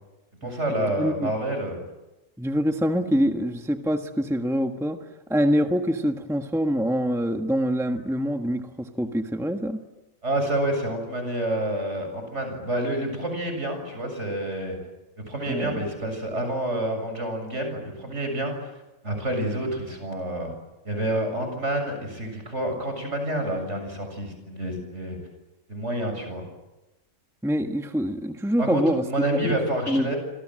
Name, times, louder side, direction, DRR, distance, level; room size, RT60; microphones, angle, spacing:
voice 1, 0.4-1.8 10.2-14.8 15.3-18.7 19.0-20.5 20.8-25.2 25.7-26.5 28.6-30.2, right 1 dB, 60° right, 5 dB, 7.6 m, -28 dB
voice 2, 1.0-1.3 2.4-9.8 15.5-15.8 27.4-29.1 29.9-30.1, equal, ahead, 5 dB, 1.4 m, -25 dB
27.5 x 26.5 x 7.7 m, 0.99 s
omnidirectional pair, 1.4 m